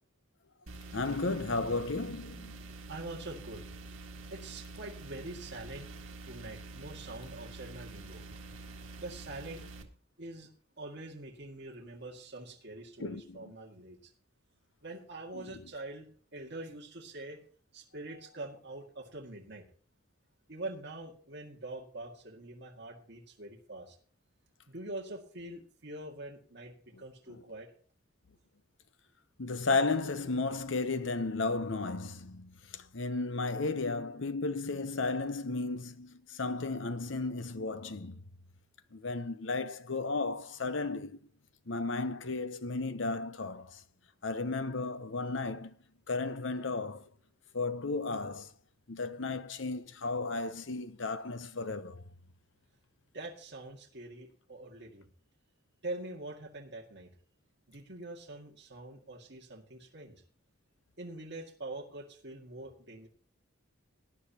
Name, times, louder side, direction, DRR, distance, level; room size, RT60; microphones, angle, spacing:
sound 1, 0.7-9.8, right 3 dB, 85° right, 1.9 m, -47 dB
voice 1, 0.9-2.6 13.0-13.5 15.3-15.5 27.3-27.4 29.4-38.2 38.9-41.2 41.7-43.8 44.2-45.7 46.1-47.0 47.5-48.5 48.9-52.0, left 3 dB, 60° left, 0.9 m, -34 dB
voice 2, 2.9-3.7 4.3-6.0 6.2-8.2 9.0-9.7 10.2-10.5 10.8-14.1 14.8-17.4 17.7-19.7 20.5-24.0 24.7-27.7 53.1-55.1 55.8-57.1 57.7-60.2 61.0-63.1, right 2 dB, 55° right, 2.1 m, -44 dB
18.5 x 10.5 x 2.9 m
head